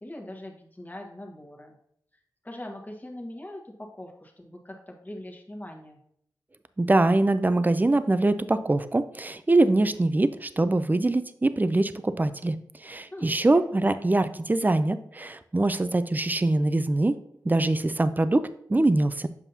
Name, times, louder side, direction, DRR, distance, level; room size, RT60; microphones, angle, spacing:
voice 1, 0.0-1.8 2.4-6.0 13.1-13.6 13.9-14.0, left 1 dB, 20° left, 1 dB, 1.4 m, -41 dB
voice 2, 6.8-12.6 12.8-17.2 17.4-19.3, right 2 dB, 25° right, 12 dB, 0.5 m, -23 dB
7.2 x 5.4 x 2.8 m, 0.70 s
cardioid pair, 40°, 8 cm